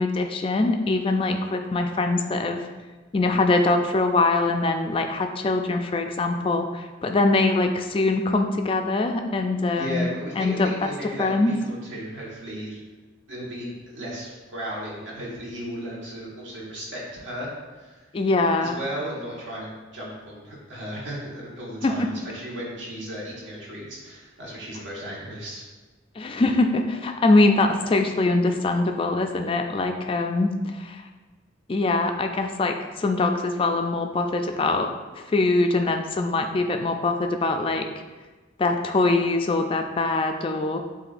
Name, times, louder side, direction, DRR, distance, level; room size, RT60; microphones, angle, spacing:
voice 1, 0.0-2.6 3.1-10.1 10.4-10.7 11.2-11.5 18.1-18.8 21.8-22.1 26.2-31.0 31.7-37.9 38.6-40.8, left 2 dB, 30° left, 5 dB, 0.3 m, -23 dB
voice 2, 9.7-12.8 13.3-18.0 18.6-25.6, equal, 70° right, -5 dB, 1.4 m, -35 dB
7.7 x 2.6 x 2.5 m, 1.3 s
head